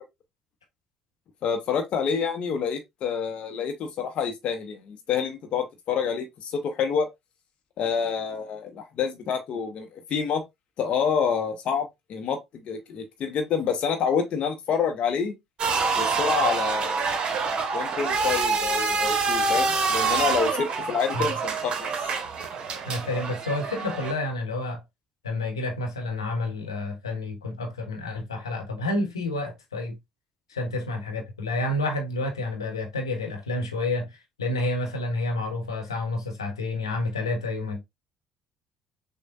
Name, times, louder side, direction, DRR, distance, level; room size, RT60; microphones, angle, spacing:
voice 1, 1.4-7.1 7.8-10.4 10.8-12.4 12.6-15.3 15.9-17.3 17.7-21.9, left 6 dB, 50° left, 0.7 m, -28 dB
sound 1, 15.6-24.1, right 4 dB, 40° right, 0.9 m, -26 dB
voice 2, 22.9-24.8 25.2-30.0 30.5-34.1 34.4-37.8, left 2 dB, 80° left, 0.9 m, -29 dB
6.1 x 2.1 x 2.5 m
figure-of-eight pair, 50°, 2 cm